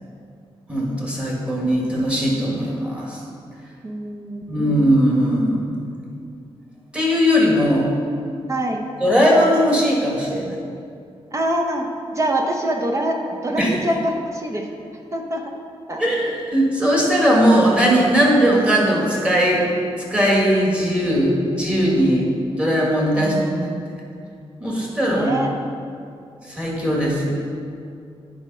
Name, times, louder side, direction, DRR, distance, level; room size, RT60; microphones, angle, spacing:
voice 1, 0.7-3.2 4.5-5.8 6.9-7.9 9.0-10.6 13.6-13.8 16.0-19.6 20.1-22.3 22.5-23.3 24.6-25.3 26.4-27.3, equal, 10° right, -4 dB, 1.8 m, -19 dB
voice 2, 3.8-4.8 7.7-7.8 8.5-8.9 11.3-11.9 12.1-13.2 13.4-14.7 15.1-15.4 15.9-16.0 23.2-23.9 25.1-25.5, right 1 dB, 30° right, 2 dB, 0.7 m, -25 dB
9.5 x 5.0 x 5.5 m, 2.5 s
wide cardioid pair, 140°, 11 cm